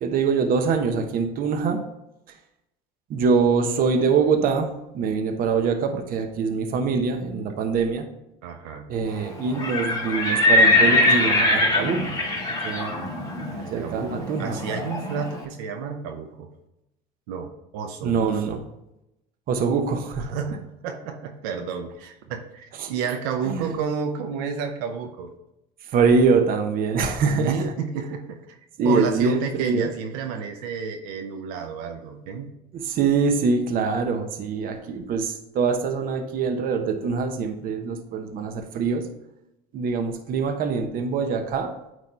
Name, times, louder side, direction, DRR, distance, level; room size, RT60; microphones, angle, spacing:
voice 1, 0.0-1.8 3.1-8.1 8.9-12.2 12.6-12.9 13.7-14.6 18.0-18.6 19.5-20.3 22.8-22.9 23.5-23.7 25.9-27.7 28.8-29.9 32.7-39.1 39.7-41.7, right 5 dB, 50° right, 6 dB, 1.0 m, -24 dB
voice 2, 8.4-9.2 13.5-16.5 17.3-18.6 20.2-25.3 27.2-28.6 28.8-32.6, right 6 dB, 85° right, 4 dB, 0.7 m, -31 dB
Livestock farm animals working animals, 9.5-15.3, left 2 dB, 20° left, 1.9 m, -22 dB
9.2 x 3.1 x 4.3 m, 0.87 s
supercardioid pair, 105°, 18 cm